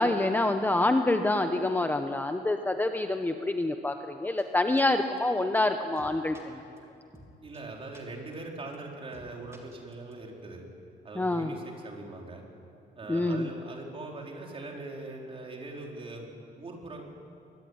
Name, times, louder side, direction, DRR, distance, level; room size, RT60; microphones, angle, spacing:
voice 1, 0.0-6.6 11.2-11.5 13.1-13.5, left 2 dB, 10° left, 6 dB, 1.0 m, -27 dB
sound 1, 4.4-4.5 4.8-4.9 5.2-5.3 5.6-5.7 6.0-6.4 6.8-6.9 7.1-7.3 7.5-7.6 7.9-8.0 8.3-8.4 8.7-8.8 9.1-9.3 9.5-10.1, right 1 dB, 15° right, 3.6 m, -52 dB
voice 2, 7.4-10.7 11.0-12.4 12.9-17.0, right 2 dB, 30° right, 0 dB, 4.6 m, -41 dB
23.5 x 23.5 x 9.8 m, 2.6 s
cardioid pair, 145°, 18 cm